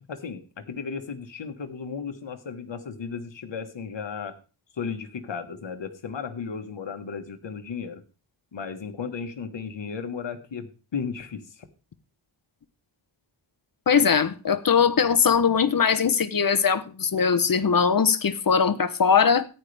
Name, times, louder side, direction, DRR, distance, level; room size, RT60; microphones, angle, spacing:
voice 1, 0.1-4.4 4.7-8.0 8.5-11.7, left 6 dB, 65° left, 1.5 m, -35 dB
voice 2, 13.9-19.5, left 6 dB, 45° left, 0.9 m, -21 dB
14.0 x 10.0 x 3.4 m
wide cardioid pair, 130°, 47 cm